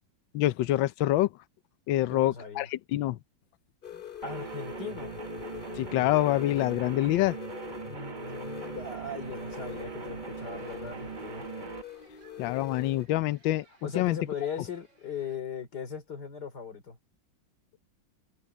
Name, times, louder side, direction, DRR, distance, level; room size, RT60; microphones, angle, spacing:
voice 1, 0.3-1.3 1.9-3.2 5.8-7.4 12.4-14.2, left 15 dB, 85° left, 1.4 m, -26 dB
voice 2, 2.1-2.7 3.9-5.2 7.7-11.5 13.8-17.0, left 5 dB, 60° left, 3.6 m, -39 dB
sound 1, 3.8-13.1, left 8 dB, 40° left, 0.7 m, -44 dB
sound 2, 4.2-11.8, right 6 dB, 30° right, 1.0 m, -41 dB
sound 3, 10.3-15.4, right 3 dB, 70° right, 7.6 m, -64 dB
omnidirectional pair, 2.1 m